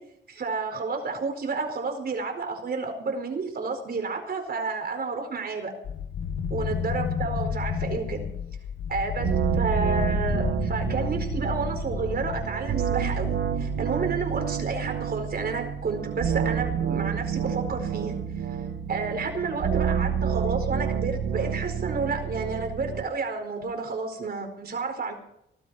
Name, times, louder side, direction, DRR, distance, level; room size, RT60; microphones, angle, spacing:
voice 1, 0.3-5.7 6.5-8.2 8.9-18.2 18.9-25.1, right 4 dB, 55° right, 4 dB, 4.7 m, -31 dB
sound 1, 5.8-12.5, left 7 dB, 80° left, 1.2 m, -31 dB
sound 2, 9.2-23.0, right 7 dB, 75° right, 1.4 m, -28 dB
19.5 x 13.0 x 5.0 m, 0.74 s
cardioid pair, 95°, 19 cm